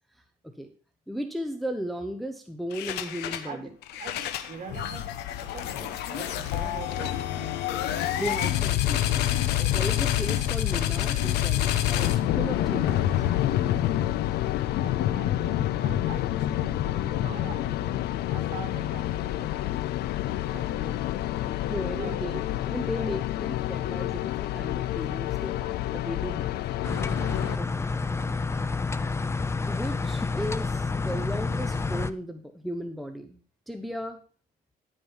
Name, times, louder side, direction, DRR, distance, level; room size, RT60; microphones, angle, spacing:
voice 1, 1.1-3.7 8.2-9.3 9.7-13.3 21.7-26.6 27.6-27.9 29.7-33.4 33.7-34.2, equal, ahead, 5 dB, 1.0 m, -36 dB
sound 1, 2.7-3.5 3.8-20.8, left 12 dB, 90° left, 1.1 m, -28 dB
voice 2, 3.5-5.1 5.4-7.6 9.4-9.8 14.7-20.2 20.5-23.4 27.9-28.7, right 5 dB, 50° right, 3 dB, 3.3 m, -44 dB
sound 2, 12.0-27.6, left 14 dB, 70° left, 0.5 m, -30 dB
sound 3, 26.8-32.1, left 4 dB, 15° left, 0.6 m, -29 dB
13.5 x 5.5 x 5.5 m, 0.40 s
cardioid pair, 110°, 17 cm